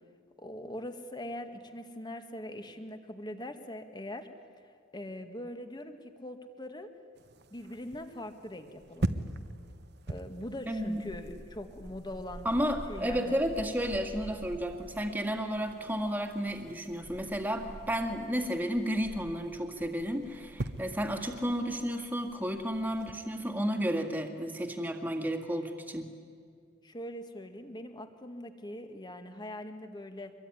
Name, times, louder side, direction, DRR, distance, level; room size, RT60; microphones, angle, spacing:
voice 1, 0.4-4.3 4.9-6.9 7.5-9.1 10.1-12.5 12.9-13.5 26.8-30.3, left 1 dB, 20° left, 7 dB, 1.8 m, -42 dB
sound 1, 7.2-23.1, right 1 dB, 55° right, 1.1 m, -42 dB
voice 2, 10.7-11.0 12.4-26.1, equal, 10° right, 4 dB, 2.1 m, -32 dB
25.0 x 22.0 x 9.9 m, 2.2 s
head